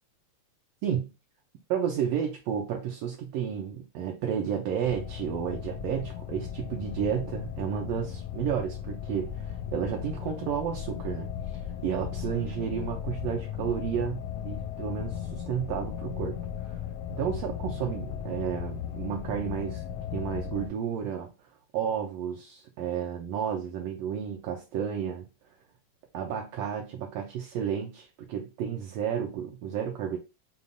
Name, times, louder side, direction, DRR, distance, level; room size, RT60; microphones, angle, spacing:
voice 1, 1.7-16.4 16.6-16.8 17.1-19.8 20.1-21.3 21.7-25.3 26.1-30.2, right 8 dB, 75° right, 2 dB, 1.5 m, -32 dB
sound 1, 4.8-20.7, left 9 dB, 80° left, 1.6 m, -36 dB
6.8 x 2.3 x 2.6 m, 0.28 s
omnidirectional pair, 3.3 m